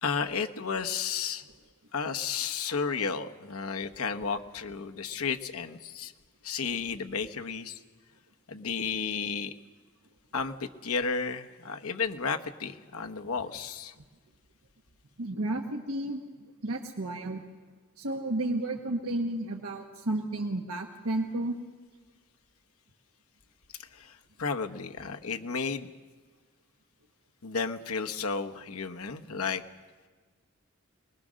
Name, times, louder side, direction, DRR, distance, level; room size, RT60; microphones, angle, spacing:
voice 1, 0.0-1.4 1.9-6.1 6.4-7.8 8.5-9.5 10.3-13.9 23.8-25.9 27.4-29.6, left 5 dB, 85° left, 5 dB, 1.1 m, -33 dB
voice 2, 15.2-17.4 18.0-21.6, right 2 dB, 85° right, 2 dB, 1.3 m, -32 dB
24.0 x 20.5 x 6.4 m, 1.4 s
head